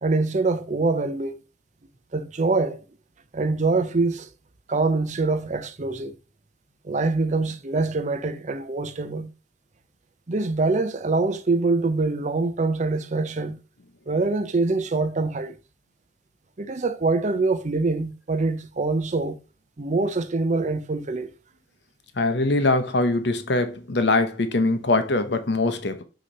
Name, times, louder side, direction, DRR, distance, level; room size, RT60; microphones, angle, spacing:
voice 1, 0.0-1.4 2.1-2.8 3.3-4.3 4.7-6.1 6.8-9.3 10.3-13.6 14.1-15.5 16.6-19.4 19.8-21.3, right 3 dB, 40° right, 0.6 m, -24 dB
voice 2, 22.2-26.0, left 2 dB, 70° left, 0.9 m, -22 dB
6.4 x 3.0 x 5.3 m
head